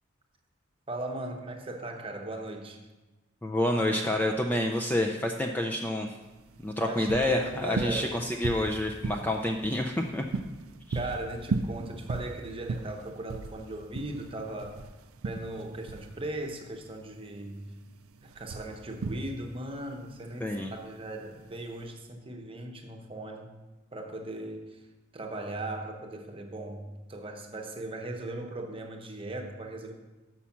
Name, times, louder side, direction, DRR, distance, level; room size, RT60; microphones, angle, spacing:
voice 1, 0.9-2.8 6.8-8.2 10.9-14.8 15.2-17.7 18.2-23.5 23.9-24.8 25.1-29.9, right 2 dB, 25° right, 3 dB, 0.8 m, -38 dB
voice 2, 3.4-6.2 6.6-10.2 10.9-11.0 20.4-20.7, left 1 dB, 10° left, 2 dB, 0.4 m, -28 dB
sound 1, 6.2-21.9, right 3 dB, 85° right, 0.4 m, -37 dB
6.2 x 5.7 x 7.1 m, 1.1 s
head